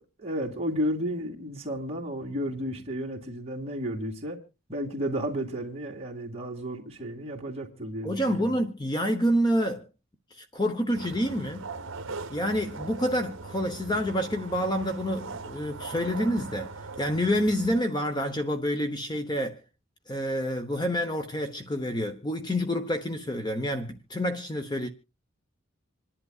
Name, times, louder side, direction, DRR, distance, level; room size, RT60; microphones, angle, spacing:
voice 1, 0.0-4.4 4.7-8.4, equal, 30° right, 2.5 m, -32 dB
voice 2, 8.0-9.9 10.3-11.7 12.3-16.7 17.0-19.6 20.1-24.9, equal, 20° left, 0.9 m, -28 dB
sound 1, 10.9-17.8, right 3 dB, 65° right, 1.0 m, -40 dB
26.5 x 11.0 x 2.4 m
head